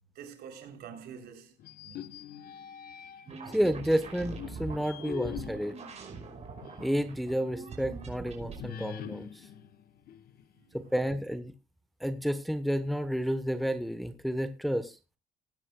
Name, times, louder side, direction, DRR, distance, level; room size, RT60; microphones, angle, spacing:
voice 1, 0.1-1.5 1.8-2.1 10.6-10.9, right 7 dB, 70° right, 3.5 m, -47 dB
sound 1, 1.6-3.4 4.0-7.0 7.4-7.5 8.6-10.7, left 10 dB, 65° left, 1.4 m, -43 dB
sound 2, 3.3-8.6, right 4 dB, 40° right, 5.3 m, -43 dB
voice 2, 3.5-5.8 6.8-9.4 10.7-11.5 12.0-15.0, equal, ahead, 1.1 m, -31 dB
20.0 x 9.8 x 2.3 m
cardioid pair, 110°, 17 cm